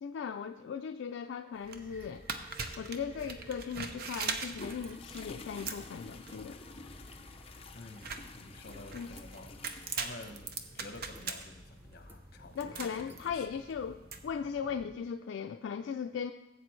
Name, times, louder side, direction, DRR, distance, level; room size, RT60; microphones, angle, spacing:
voice 1, 0.0-2.3 2.8-6.6 8.9-9.1 12.6-16.3, left 7 dB, 80° left, 6 dB, 0.3 m, -38 dB
sound 1, 1.5-14.2, right 5 dB, 55° right, 0.7 m, -42 dB
sound 2, 1.6-15.0, equal, 10° right, 0.6 m, -54 dB
sound 3, 4.6-10.5, left 3 dB, 30° left, 0.6 m, -50 dB
voice 2, 7.7-13.4, left 2 dB, 55° left, 7 dB, 0.9 m, -50 dB
15.0 x 8.1 x 3.1 m, 0.98 s
head